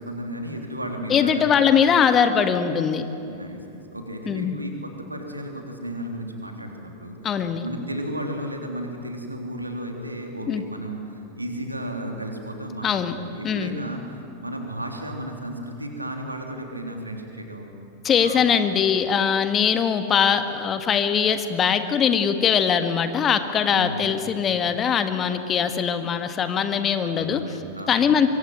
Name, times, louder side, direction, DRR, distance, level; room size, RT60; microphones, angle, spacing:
voice 1, 0.0-1.9 3.2-7.2 7.6-17.7 18.2-18.4 23.7-24.1 27.0-28.1, right 1 dB, 85° right, 3 dB, 3.5 m, -34 dB
voice 2, 1.1-3.1 4.2-4.6 7.2-7.7 10.5-10.6 12.8-13.2 13.4-13.8 18.0-27.4 27.9-28.3, left 7 dB, 25° left, 9 dB, 1.7 m, -21 dB
24.5 x 23.5 x 9.2 m, 2.9 s
figure-of-eight pair, 90°, 0 cm